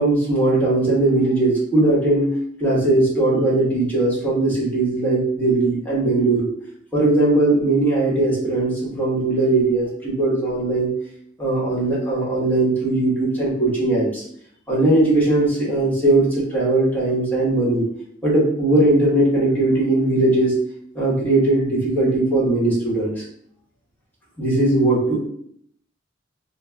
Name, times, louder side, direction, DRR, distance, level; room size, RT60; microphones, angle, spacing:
voice 1, 0.0-2.3 2.6-6.5 6.9-10.9 11.4-14.2 14.7-17.9 18.2-20.6 20.9-23.2 24.4-25.2, right 2 dB, 10° left, -7 dB, 1.2 m, -19 dB
3.8 x 2.1 x 2.3 m, 0.65 s
head